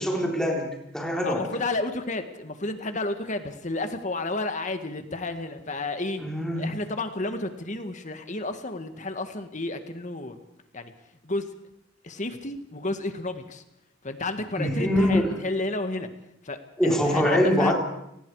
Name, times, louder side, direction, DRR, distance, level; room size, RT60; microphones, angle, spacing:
voice 1, 0.0-1.5 6.2-6.8 14.6-15.4 16.8-17.7, equal, 5° left, -1 dB, 4.0 m, -24 dB
voice 2, 1.2-6.2 6.6-10.4 10.7-10.9 11.2-11.4 12.0-13.6 14.0-16.1 16.4-17.7, left 2 dB, 40° left, 8 dB, 1.7 m, -31 dB
28.5 x 19.5 x 4.9 m, 0.81 s
head